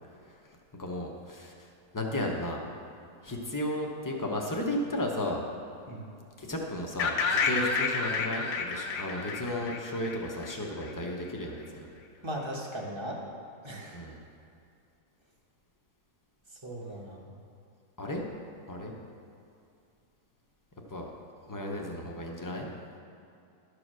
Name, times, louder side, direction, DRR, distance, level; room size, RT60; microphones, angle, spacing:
voice 1, 0.8-2.6 3.2-5.5 6.4-11.9 13.9-14.2 18.0-18.2 18.7-18.9 20.9-21.1 21.5-22.7, left 1 dB, 25° left, 0 dB, 0.4 m, -34 dB
sound 1, 7.0-10.9, left 4 dB, 75° left, 1.4 m, -30 dB
voice 2, 12.2-13.2 13.6-14.0 16.6-17.2, right 1 dB, 20° right, -1 dB, 0.9 m, -37 dB
12.0 x 4.9 x 6.2 m, 2.5 s
omnidirectional pair, 1.8 m